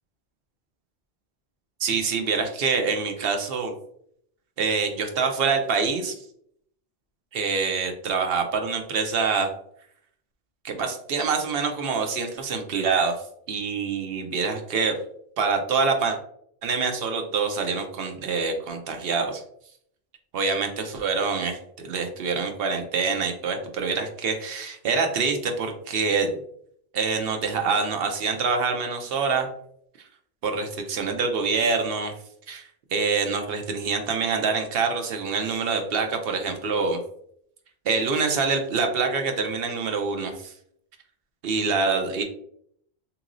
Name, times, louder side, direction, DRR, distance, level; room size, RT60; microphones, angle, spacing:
voice 1, 1.8-3.7 4.6-6.2 7.3-9.5 10.6-13.2 13.5-15.0 15.4-16.2 16.6-19.4 20.3-26.4 26.9-29.5 30.4-32.1 32.5-37.0 37.8-40.5 41.4-42.2, right 5 dB, 65° right, 5 dB, 0.8 m, -25 dB
3.8 x 3.0 x 2.5 m, 0.68 s
omnidirectional pair, 1.1 m